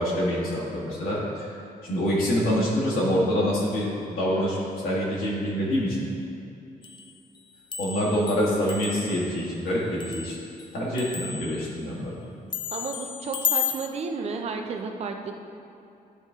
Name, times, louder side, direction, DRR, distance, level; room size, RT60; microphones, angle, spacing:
voice 1, 0.0-6.1 7.8-10.4 10.7-12.2, equal, 75° left, -6 dB, 1.8 m, -26 dB
sound 1, 6.8-7.1 7.4-10.7 11.0-11.7 12.5-13.9, left 8 dB, 30° left, 0.4 m, -33 dB
voice 2, 12.7-15.3, right 4 dB, 45° right, 4 dB, 0.6 m, -32 dB
11.5 x 4.1 x 3.7 m, 2.7 s
cardioid pair, 160°, 15 cm